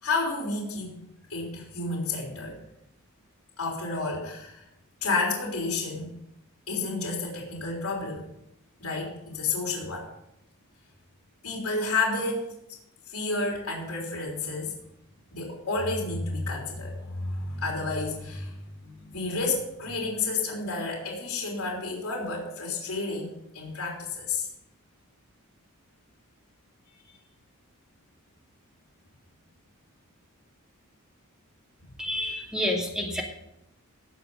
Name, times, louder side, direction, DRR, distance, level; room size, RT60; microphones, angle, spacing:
voice 1, 0.0-1.0 1.3-2.6 3.6-4.6 5.0-6.2 6.7-8.3 8.8-10.1 11.4-12.6 13.1-14.8 15.3-24.5 32.2-32.3, left 3 dB, 75° left, -2 dB, 3.7 m, -31 dB
voice 2, 32.0-33.2, left 1 dB, 5° right, -1 dB, 2.5 m, -29 dB
18.0 x 6.8 x 5.6 m, 0.84 s
head